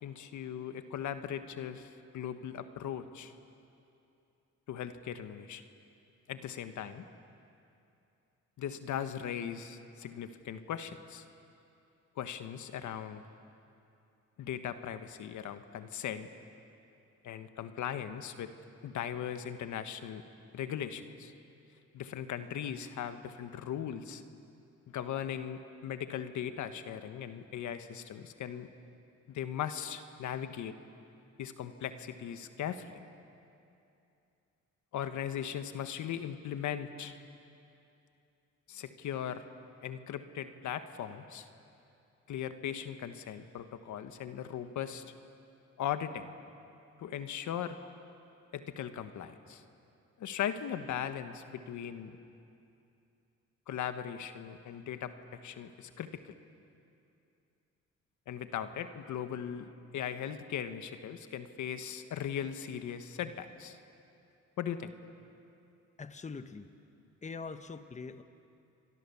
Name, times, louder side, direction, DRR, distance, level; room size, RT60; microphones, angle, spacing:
voice 1, 0.0-3.3 4.7-5.6 6.3-7.0 8.6-11.2 12.2-13.2 14.4-16.3 17.2-18.5 18.8-20.2 20.5-21.3 21.9-24.2 24.9-28.7 29.3-30.8 31.4-33.0 34.9-37.2 38.7-39.4 39.8-41.5 42.3-45.0 45.8-46.3 47.0-47.8 48.5-49.6 50.2-52.2 53.7-55.1 55.4-56.3 58.3-63.8 64.6-64.9, left 9 dB, 75° left, 9 dB, 1.4 m, -38 dB
voice 2, 66.0-66.7 67.2-68.2, left 4 dB, 25° left, 9 dB, 1.1 m, -43 dB
30.0 x 24.0 x 7.1 m, 2.7 s
cardioid pair, 90°, 30 cm